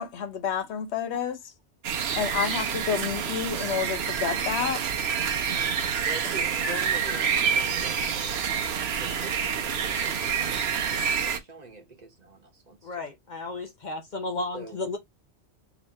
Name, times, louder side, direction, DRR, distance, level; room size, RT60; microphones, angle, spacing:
voice 1, 0.0-1.4 2.2-4.8 6.2-6.3, left 7 dB, 75° left, 1.0 m, -29 dB
sound 1, 1.8-11.4, right 7 dB, 70° right, 0.9 m, -27 dB
voice 2, 6.0-8.4 8.9-12.9 14.5-14.8, right 3 dB, 40° right, 1.1 m, -43 dB
voice 3, 12.8-15.0, left 2 dB, 50° left, 0.7 m, -33 dB
3.9 x 3.0 x 2.9 m
omnidirectional pair, 1.2 m